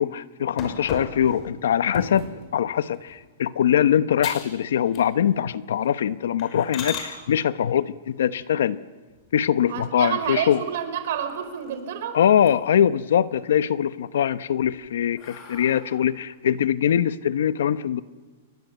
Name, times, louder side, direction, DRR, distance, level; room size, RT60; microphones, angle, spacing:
voice 1, 0.0-8.8 9.3-10.6 12.1-18.0, left 9 dB, 80° left, 14 dB, 1.0 m, -22 dB
sound 1, 0.6-2.4 2.9-3.3 3.7-3.8 4.2-4.6 4.9-5.4 5.7-5.9 6.4-7.1 9.1-9.8 10.2-10.3 10.7-10.8 11.1-11.9 12.3-12.9 13.3-13.9 14.5-16.2, left 5 dB, 30° left, 5.8 m, -38 dB
voice 2, 9.7-12.2, right 9 dB, 55° right, 9 dB, 4.5 m, -29 dB
29.0 x 23.0 x 8.2 m, 1.3 s
supercardioid pair, 170°, 0 cm